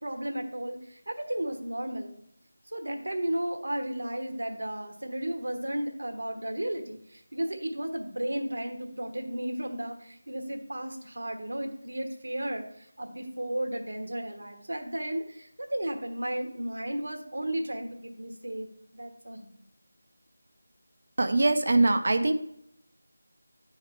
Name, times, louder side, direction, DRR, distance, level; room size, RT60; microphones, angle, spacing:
voice 1, 0.0-2.1 2.7-19.5, right 1 dB, 65° right, 4 dB, 1.2 m, -34 dB
voice 2, 21.2-22.3, right 2 dB, 45° right, 8 dB, 0.6 m, -22 dB
10.5 x 4.8 x 3.3 m, 0.73 s
figure-of-eight pair, 165°, 0 cm